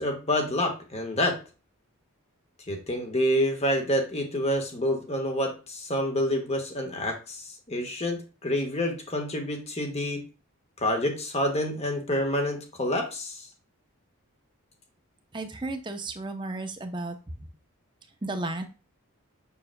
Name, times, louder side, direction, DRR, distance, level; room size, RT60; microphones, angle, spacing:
voice 1, 0.0-1.4 2.7-10.2 10.8-13.5, left 1 dB, 30° left, 3 dB, 1.3 m, -28 dB
voice 2, 15.3-17.2 18.2-18.6, right 2 dB, 20° right, 6 dB, 0.7 m, -33 dB
6.8 x 6.5 x 2.2 m, 0.33 s
head